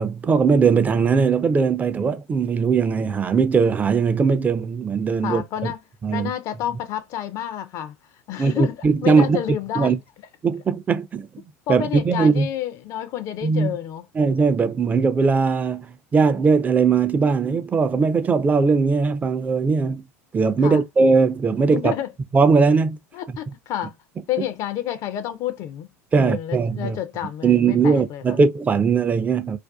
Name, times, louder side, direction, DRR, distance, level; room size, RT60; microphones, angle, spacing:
voice 1, 0.0-5.7 6.0-6.3 8.4-9.4 9.8-10.0 10.4-11.4 11.7-12.5 13.4-13.7 14.2-20.0 20.3-21.9 22.3-23.0 26.1-27.0 27.4-29.6, right 5 dB, 20° right, 0.4 m, -19 dB
voice 2, 5.2-5.8 6.1-7.9 8.3-10.0 11.7-14.1 20.6-20.8 21.7-22.1 23.1-23.9 24.3-25.9 26.1-28.4, left 11 dB, 45° left, 0.4 m, -29 dB
2.5 x 2.2 x 2.2 m
figure-of-eight pair, 75°, 8 cm